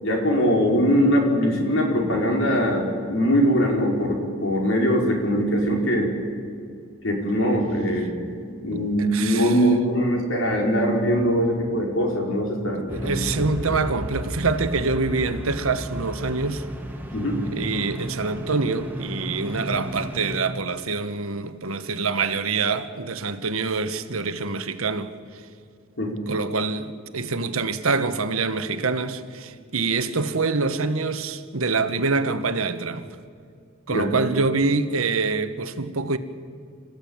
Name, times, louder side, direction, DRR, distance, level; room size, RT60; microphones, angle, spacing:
voice 1, 0.0-6.1 7.0-13.3 17.1-17.4 26.0-26.2 33.9-34.1, equal, 70° left, 4.8 m, -22 dB
voice 2, 8.7-9.6 12.7-16.6 17.5-25.1 26.3-33.1 33.9-36.2, right 4 dB, 85° right, 1.4 m, -25 dB
sound 1, 12.9-20.4, equal, 10° right, 1.7 m, -33 dB
26.5 x 15.0 x 8.8 m
head